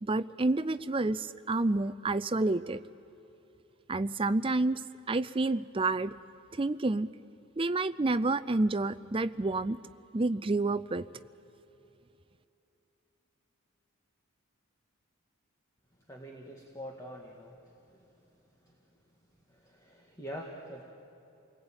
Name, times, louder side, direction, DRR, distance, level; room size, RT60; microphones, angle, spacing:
voice 1, 0.0-2.8 3.9-4.8 5.1-6.1 6.5-7.1 7.6-9.8 10.1-11.0, right 2 dB, 25° right, 13 dB, 0.5 m, -29 dB
voice 2, 16.1-17.5 17.9-18.0 18.6-18.7 19.5-20.8, equal, 15° left, -1 dB, 1.8 m, -44 dB
28.5 x 20.0 x 8.9 m, 2.9 s
head